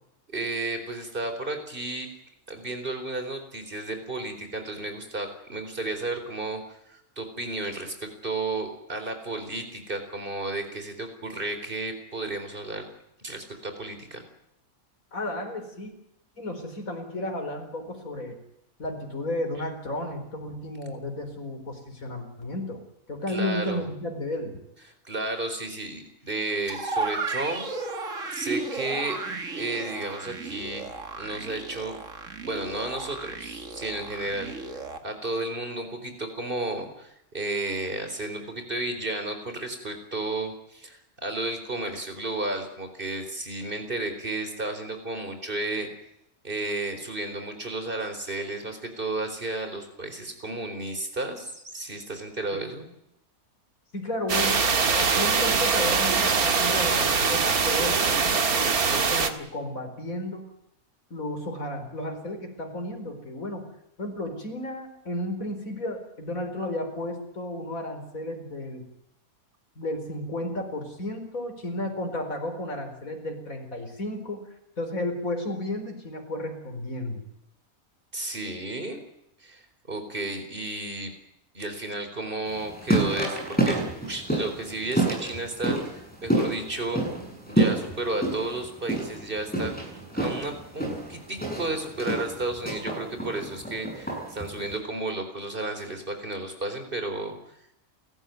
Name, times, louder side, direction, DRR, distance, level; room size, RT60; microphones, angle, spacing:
voice 1, 0.3-2.1 2.5-6.6 6.9-12.8 13.2-14.2 23.3-23.8 25.0-27.6 28.3-29.2 29.5-30.8 31.2-32.0 32.4-45.9 46.4-52.9 78.1-79.0 79.4-81.1 81.5-87.0 87.5-89.7 90.1-97.4, right 2 dB, 35° right, 7 dB, 4.5 m, -33 dB
voice 2, 15.1-15.9 16.4-18.4 18.8-22.8 23.1-24.6 52.5-52.6 53.9-54.7 54.9-60.4 61.1-63.7 64.0-68.8 69.8-74.4 74.8-77.2, left 1 dB, 65° left, 5 dB, 5.0 m, -33 dB
sound 1, 26.7-35.0, right 3 dB, 60° right, 2.5 m, -34 dB
sound 2, 54.3-59.3, right 5 dB, 80° right, 2.3 m, -23 dB
sound 3, 82.5-94.8, right 2 dB, 5° left, 7.5 m, -29 dB
30.0 x 14.0 x 9.5 m, 0.80 s
omnidirectional pair, 1.5 m